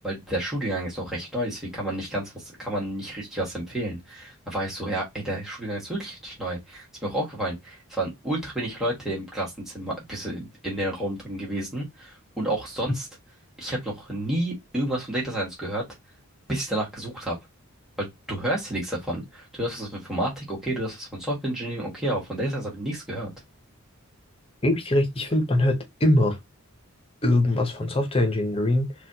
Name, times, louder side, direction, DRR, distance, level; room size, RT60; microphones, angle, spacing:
voice 1, 0.0-13.1 13.6-15.8 16.5-17.4 18.0-23.3, right 1 dB, ahead, 1.2 m, -30 dB
voice 2, 24.6-26.4 27.2-28.9, left 1 dB, 25° left, 0.7 m, -22 dB
4.0 x 2.3 x 2.7 m
head